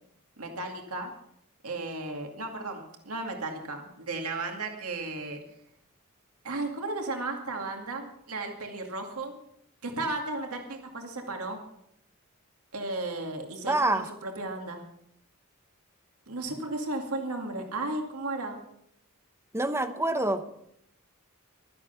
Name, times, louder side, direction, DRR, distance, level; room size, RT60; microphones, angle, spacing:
voice 1, 0.4-1.1 1.6-5.4 6.4-9.4 9.8-11.6 12.7-14.8 16.3-18.6, right 2 dB, 80° right, 3 dB, 2.3 m, -34 dB
voice 2, 13.7-14.1 19.5-20.5, right 2 dB, 10° right, 9 dB, 0.9 m, -26 dB
12.5 x 11.0 x 5.8 m, 0.75 s
head